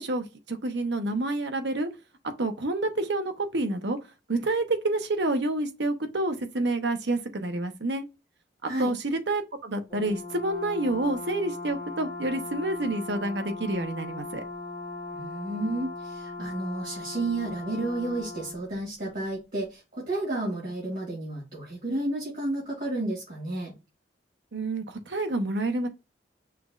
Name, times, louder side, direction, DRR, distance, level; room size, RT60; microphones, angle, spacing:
voice 1, 0.0-1.9 2.4-4.0 4.3-8.1 8.6-14.4 24.5-25.9, right 2 dB, 70° right, 0.9 m, -28 dB
Brass instrument, 9.9-18.6, left 3 dB, 30° left, 1.8 m, -38 dB
voice 2, 15.1-23.7, right 2 dB, 55° right, 2.5 m, -31 dB
5.9 x 3.2 x 2.4 m
head